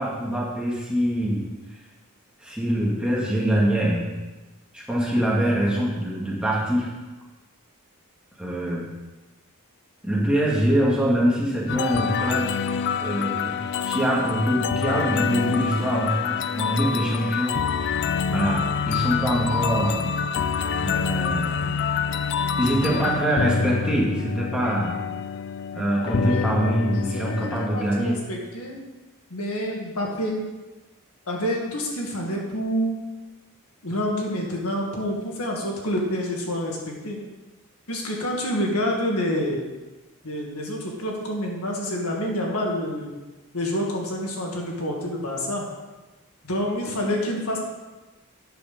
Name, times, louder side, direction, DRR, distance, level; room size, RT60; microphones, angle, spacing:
voice 1, 0.0-1.5 2.4-4.2 4.7-6.9 8.4-8.9 10.0-12.6 13.0-20.1 20.8-21.6 22.6-25.0 25.7-28.2, right 1 dB, 5° right, -5 dB, 1.9 m, -24 dB
sound 1, 11.7-27.7, left 6 dB, 50° left, 0.3 m, -26 dB
voice 2, 26.2-26.5 26.9-28.8 29.3-30.4 31.3-33.0 33.8-37.2 37.9-39.7 40.2-43.1 43.5-45.7 46.4-47.7, equal, 75° left, -1 dB, 1.9 m, -28 dB
9.0 x 6.8 x 5.2 m, 1.2 s
head